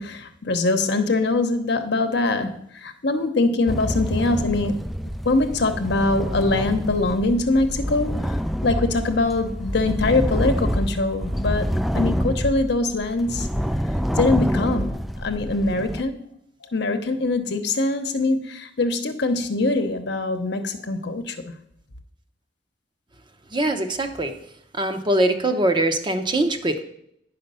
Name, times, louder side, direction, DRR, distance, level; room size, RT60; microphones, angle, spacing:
voice 1, 0.0-2.5 2.8-4.8 5.2-8.1 8.6-11.7 11.9-13.5 14.2-14.9 15.2-16.2 16.7-21.5, left 2 dB, 65° left, 7 dB, 0.9 m, -23 dB
sound 1, 3.7-16.0, equal, ahead, 0.3 m, -27 dB
voice 2, 23.5-24.3 24.7-26.8, right 1 dB, 25° right, 7 dB, 0.7 m, -22 dB
9.6 x 5.7 x 5.5 m, 0.72 s
head